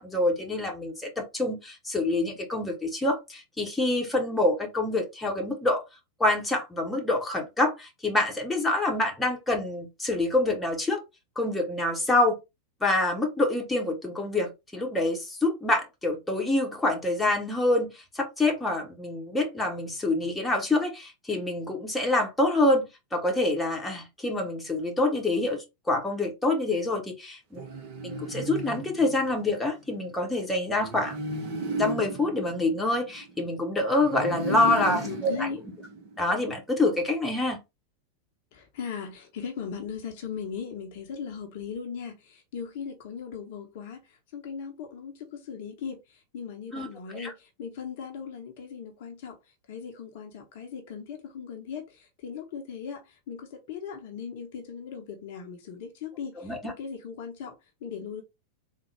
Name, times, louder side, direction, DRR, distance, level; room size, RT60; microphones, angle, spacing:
voice 1, 0.0-5.8 6.2-11.0 11.4-12.4 12.8-27.6 28.0-31.2 31.8-35.5 36.2-37.6 46.7-46.9 47.1-47.3 56.4-56.7, left 2 dB, 10° left, 1.0 m, -26 dB
sound 1, 27.5-29.7 30.8-33.5 34.0-36.3, right 2 dB, 45° right, 1.0 m, -35 dB
voice 2, 34.3-35.6 38.5-49.4 49.7-57.6 57.8-58.2, left 6 dB, 50° left, 0.7 m, -38 dB
3.6 x 2.3 x 3.3 m
figure-of-eight pair, 90°, 0 cm